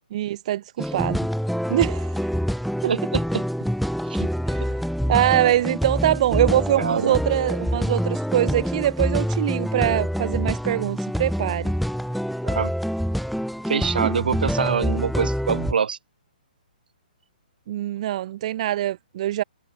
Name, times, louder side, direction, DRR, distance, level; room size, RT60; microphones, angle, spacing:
voice 1, 0.1-1.2 1.7-2.2 4.5-4.7 5.1-11.7 17.7-19.4, right 13 dB, 45° right, 1.0 m, -23 dB
sound 1, 0.8-15.7, equal, ahead, 0.3 m, -26 dB
voice 2, 2.8-3.7 4.0-4.3 6.3-7.2 12.4-12.7 13.7-16.0, right 6 dB, 75° right, 2.4 m, -26 dB
hypercardioid pair, 150°, 5 cm